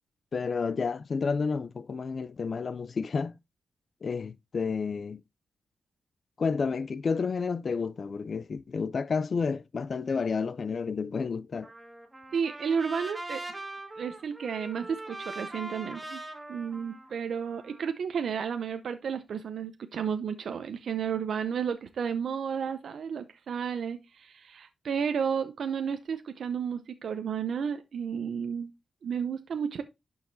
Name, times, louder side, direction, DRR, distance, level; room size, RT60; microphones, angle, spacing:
voice 1, 0.3-3.3 4.0-5.2 6.4-11.7, left 5 dB, 50° left, 0.3 m, -30 dB
Trumpet, 11.6-17.9, right 2 dB, 15° right, 1.4 m, -42 dB
voice 2, 12.3-13.4 14.0-16.2 16.5-28.7 29.0-29.8, right 7 dB, 70° right, 0.6 m, -32 dB
11.5 x 4.7 x 2.6 m
wide cardioid pair, 115°, 0 cm